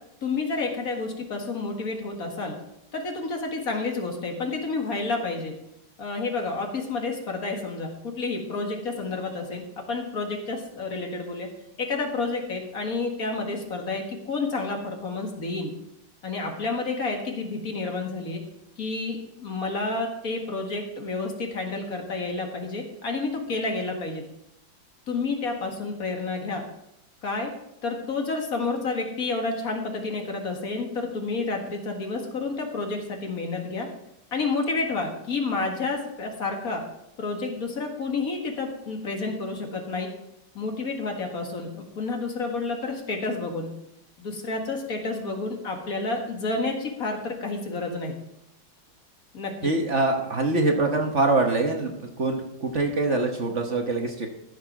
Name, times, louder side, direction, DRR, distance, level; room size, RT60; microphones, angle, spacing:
voice 1, 0.2-2.6 2.9-5.5 6.0-11.5 11.8-15.7 16.2-18.4 18.8-24.2 25.1-26.6 27.2-27.5 27.8-33.9 34.3-36.8 37.2-40.1 40.5-43.7 44.2-48.2 49.3-49.7, left 3 dB, 45° left, 2 dB, 2.0 m, -30 dB
voice 2, 49.6-54.3, right 2 dB, 45° right, 3 dB, 1.2 m, -24 dB
14.0 x 6.9 x 4.7 m, 0.82 s
omnidirectional pair, 2.1 m